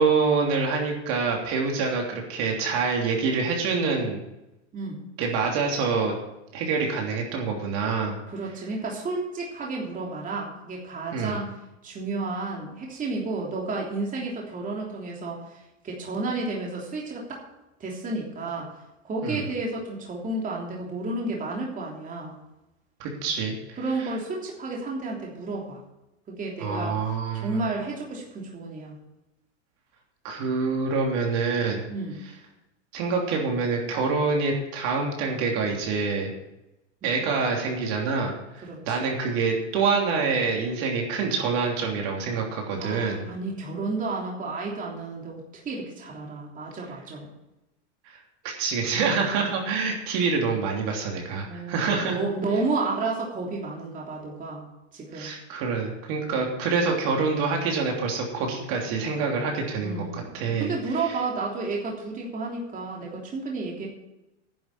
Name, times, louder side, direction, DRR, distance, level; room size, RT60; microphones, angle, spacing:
voice 1, 0.0-4.2 5.2-6.1 6.5-8.2 11.1-11.4 19.2-19.4 23.0-24.1 26.6-27.6 30.2-31.8 32.9-36.3 37.0-43.2 48.1-48.2 48.4-52.1 55.1-60.7 61.0-61.1, right 4 dB, 55° right, 0 dB, 3.2 m, -26 dB
voice 2, 4.7-5.0 8.3-11.5 11.8-17.4 17.8-18.7 19.0-22.3 23.8-25.8 26.3-29.0 31.9-32.2 37.0-37.2 38.6-39.1 42.7-47.3 49.4-49.5 49.8-49.9 51.5-54.6 54.9-55.3 59.8-63.9, right 3 dB, 20° right, -2 dB, 3.2 m, -32 dB
10.5 x 7.1 x 8.8 m, 0.93 s
supercardioid pair, 130°, 37 cm